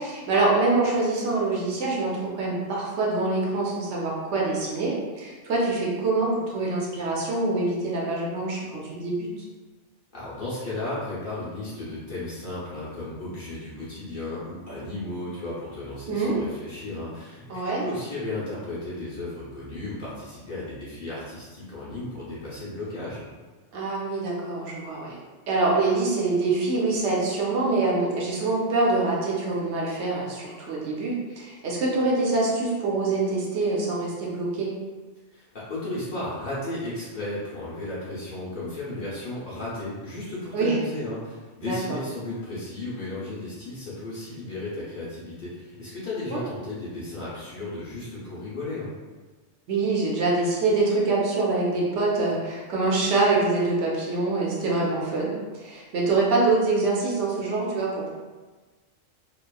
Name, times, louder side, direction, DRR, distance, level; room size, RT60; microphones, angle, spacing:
voice 1, 0.0-9.3 16.1-16.4 17.5-17.8 23.7-25.2 25.5-34.7 40.5-40.8 41.6-42.0 46.3-46.4 49.7-58.1, right 3 dB, 70° right, -4 dB, 0.9 m, -25 dB
voice 2, 10.1-23.2 35.3-48.9, left 2 dB, 50° left, -9 dB, 0.8 m, -34 dB
2.8 x 2.3 x 2.2 m, 1.3 s
omnidirectional pair, 1.3 m